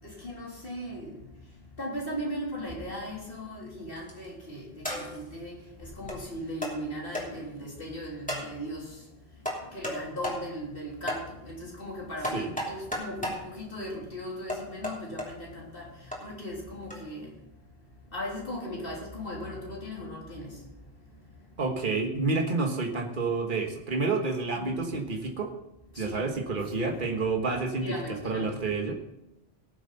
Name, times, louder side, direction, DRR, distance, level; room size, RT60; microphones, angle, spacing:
voice 1, 0.0-17.3 18.1-21.4 24.5-24.9 25.9-26.7 27.8-28.7, equal, 60° left, -3 dB, 3.6 m, -38 dB
sound 1, 3.9-4.3 4.8-5.3 6.1-6.2 6.6-6.8 7.1-7.3 8.3-8.5 9.5-10.0 10.2-10.4 11.1-11.2 12.2-13.4 14.5-15.3 16.1-16.2 16.9-17.0, equal, 5° left, 3.0 m, -33 dB
voice 2, 21.6-25.5 26.0-27.9 28.2-28.9, right 3 dB, 55° right, 2 dB, 1.6 m, -29 dB
19.0 x 7.4 x 4.1 m, 0.89 s
omnidirectional pair, 1.1 m